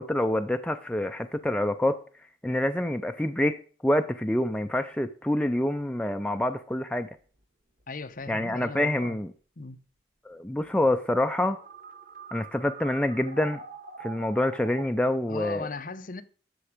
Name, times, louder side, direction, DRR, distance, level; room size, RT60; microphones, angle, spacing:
voice 1, 0.0-2.0 2.4-3.6 3.8-7.1 8.3-9.3 10.3-11.6 12.3-13.6 14.0-15.7, left 1 dB, 5° left, 0.4 m, -26 dB
sound 1, 7.4-7.5 7.8-8.5 10.8-14.9, right 5 dB, 45° right, 1.4 m, -45 dB
voice 2, 7.9-9.2 9.6-9.8 15.3-16.2, left 3 dB, 45° left, 0.7 m, -37 dB
11.5 x 7.0 x 5.0 m
head